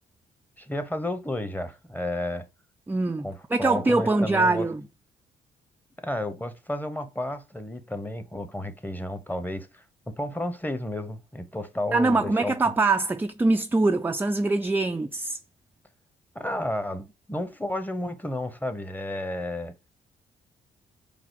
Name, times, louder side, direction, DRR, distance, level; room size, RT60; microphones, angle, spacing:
voice 1, 0.6-2.5 3.2-4.7 6.0-12.5 16.3-19.7, left 1 dB, 10° left, 0.9 m, -32 dB
voice 2, 2.9-4.8 11.9-15.4, right 3 dB, 10° right, 0.4 m, -23 dB
4.9 x 2.0 x 4.5 m
hypercardioid pair, 50°, 20 cm